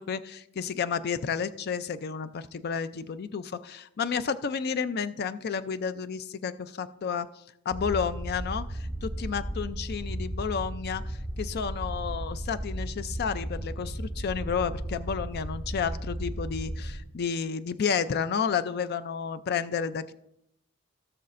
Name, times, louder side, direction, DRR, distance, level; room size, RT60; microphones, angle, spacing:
voice 1, 0.0-7.3 7.7-20.1, left 6 dB, 50° left, 12 dB, 0.4 m, -31 dB
sound 1, 7.7-17.0, right 1 dB, 15° left, 3.7 m, -35 dB
17.5 x 6.6 x 2.5 m, 0.78 s
head